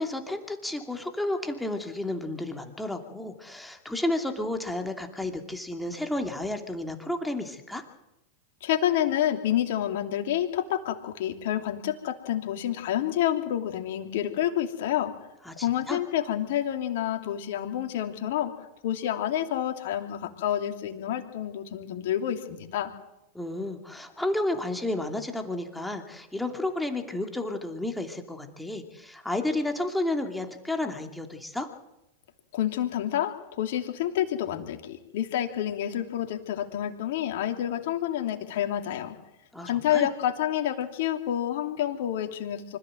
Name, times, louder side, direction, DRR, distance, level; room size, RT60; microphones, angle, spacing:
voice 1, 0.0-7.8 15.5-16.0 23.3-31.7 39.5-40.1, left 1 dB, 5° left, 4 dB, 2.6 m, -31 dB
voice 2, 8.6-15.1 15.6-18.5 18.8-22.9 32.5-39.2 39.6-42.8, left 11 dB, 65° left, 5 dB, 2.8 m, -28 dB
25.0 x 15.0 x 7.9 m, 0.91 s
hypercardioid pair, 100°, 0 cm